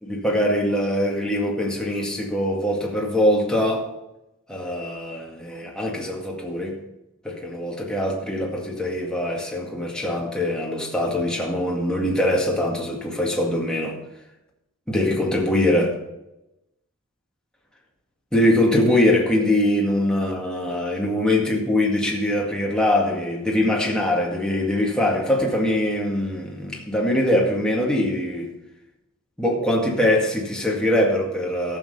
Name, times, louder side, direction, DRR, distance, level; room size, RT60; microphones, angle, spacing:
voice 1, 0.0-3.9 4.5-6.8 7.2-14.0 14.9-16.0 18.3-28.5 29.4-31.8, left 1 dB, 5° left, 2.0 m, -22 dB
14.0 x 6.7 x 5.4 m
head